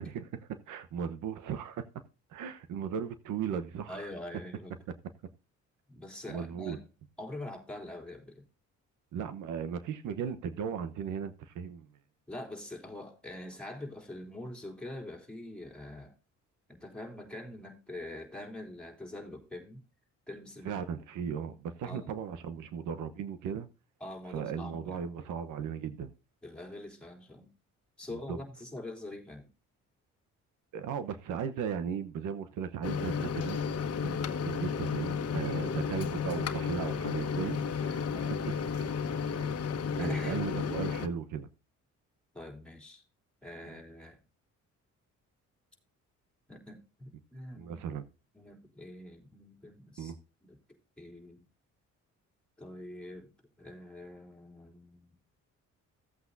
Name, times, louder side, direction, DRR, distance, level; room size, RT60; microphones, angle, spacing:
voice 1, 0.0-1.9 2.3-4.1 6.3-6.8 9.1-11.9 20.6-23.7 24.3-26.1 28.1-28.4 30.7-38.8 39.3-39.6 40.0-41.5 43.7-43.8 47.5-48.0 50.0-50.2, right 7 dB, 85° right, 1.1 m, -37 dB
voice 2, 3.9-4.8 5.9-6.8 7.2-8.5 12.3-16.1 16.7-19.8 20.3-20.8 21.8-22.1 24.0-25.0 26.4-27.5 28.0-29.5 38.1-38.5 40.0-40.4 42.3-43.0 43.4-44.2 46.5-47.8 48.3-50.1 50.5-50.6 51.0-51.5 52.6-55.2, left 1 dB, 5° left, 3.6 m, -44 dB
Microwave oven, 32.8-41.1, left 6 dB, 55° left, 1.3 m, -33 dB
15.5 x 8.2 x 2.7 m
cardioid pair, 90°, 30 cm